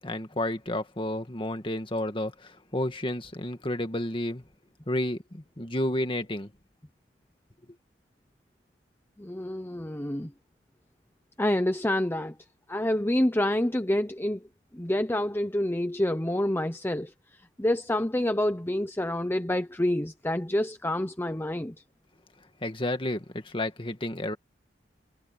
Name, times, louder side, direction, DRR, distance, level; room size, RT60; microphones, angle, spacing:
voice 1, 0.0-4.4 4.9-6.5 22.6-24.4, left 1 dB, 30° left, 2.0 m, -31 dB
voice 2, 9.2-10.3 11.4-12.3 12.7-14.4 14.7-17.1 17.6-21.7, left 1 dB, 10° left, 0.8 m, -27 dB
head